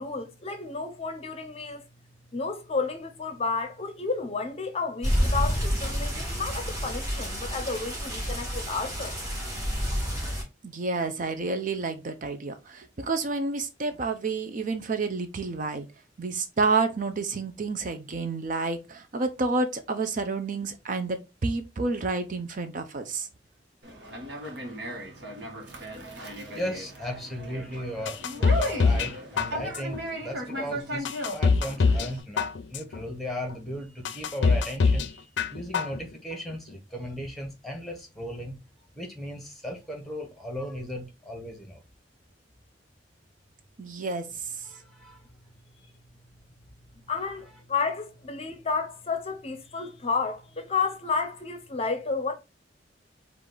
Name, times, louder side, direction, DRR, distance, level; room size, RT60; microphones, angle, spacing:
voice 1, 0.0-1.8 2.3-9.2 47.1-52.3, left 4 dB, 35° left, 0.6 m, -31 dB
sound 1, 5.0-10.4, equal, 20° right, 2.4 m, -29 dB
voice 2, 10.6-15.9 16.2-23.3 43.8-44.7, right 3 dB, 45° right, 0.5 m, -29 dB
Conversation, 23.8-32.2, equal, 70° right, 1.2 m, -36 dB
voice 3, 26.5-31.1 31.3-35.2 35.5-38.5 38.9-41.8 44.6-45.2, equal, ahead, 1.2 m, -36 dB
sound 2, 28.1-29.1 29.4-30.0 30.5-30.6 31.1-32.1 32.4-33.0 33.5-33.6 34.1-35.1 35.4-36.0 36.3-36.4, left 4 dB, 75° left, 0.5 m, -23 dB
4.7 x 2.5 x 3.7 m
head